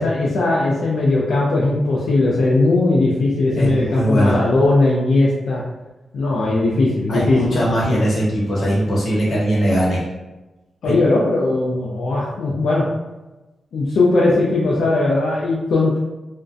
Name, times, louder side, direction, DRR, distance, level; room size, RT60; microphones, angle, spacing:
voice 1, 0.0-5.6 6.1-7.4 10.8-12.8 13.7-16.0, left 2 dB, 85° left, -5 dB, 0.4 m, -18 dB
voice 2, 3.6-4.4 7.1-10.0 10.8-10.9, equal, 60° left, -4 dB, 0.8 m, -19 dB
2.5 x 2.1 x 2.4 m, 1.1 s
wide cardioid pair, 105°, 0 cm